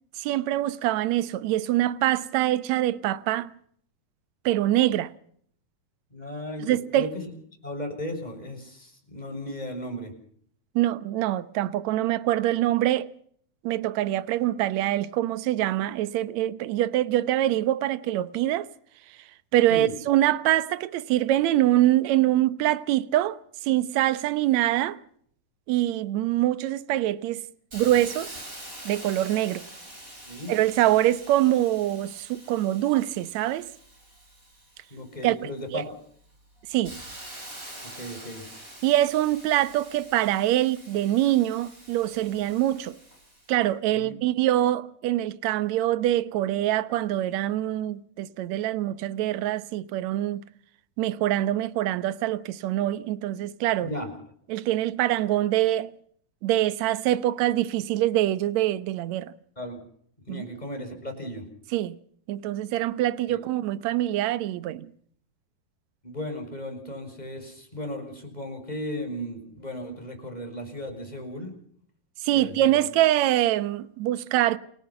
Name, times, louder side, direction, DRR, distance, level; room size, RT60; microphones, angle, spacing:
voice 1, 0.2-3.5 4.5-5.1 6.6-7.1 10.8-13.1 13.6-18.7 19.5-25.0 25.7-27.4 27.7-28.4 28.9-29.6 30.5-33.7 35.2-35.8 36.7-36.9 38.8-42.9 43.5-50.4 51.0-53.9 54.5-55.9 56.4-59.3 60.3-60.4 61.7-62.0 62.3-64.9 72.2-74.6, right 14 dB, 70° right, 1.9 m, -24 dB
voice 2, 6.1-7.3 7.6-10.1 19.7-19.9 30.3-30.5 34.9-35.9 37.8-38.4 43.9-44.2 53.8-54.1 59.6-59.8 60.3-61.4 63.3-63.4 66.0-71.5 72.3-72.9, left 1 dB, 10° left, 6.3 m, -36 dB
Hiss, 27.7-35.3 35.8-43.5, right 1 dB, 20° right, 6.8 m, -45 dB
29.0 x 17.5 x 5.8 m
omnidirectional pair, 4.2 m